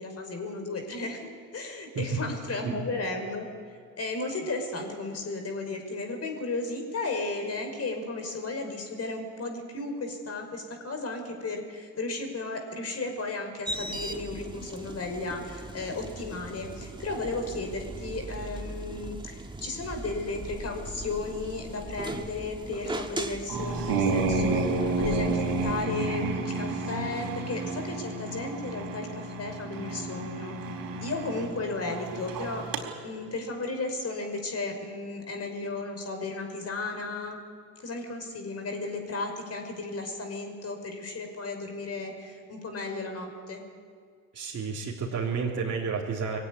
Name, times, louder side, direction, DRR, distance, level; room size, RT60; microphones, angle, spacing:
voice 1, 0.0-3.5 4.0-30.5 31.0-32.6 33.0-37.4 37.8-43.6, left 3 dB, 35° left, 4 dB, 5.8 m, -34 dB
sound 1, 13.7-25.9, right 2 dB, 10° right, 2.0 m, -39 dB
sound 2, 23.5-32.8, right 3 dB, 50° right, 4.5 m, -30 dB
voice 2, 44.3-46.4, right 5 dB, 35° right, -4 dB, 3.6 m, -31 dB
22.5 x 16.0 x 9.9 m, 2.1 s
hypercardioid pair, 65°, 43 cm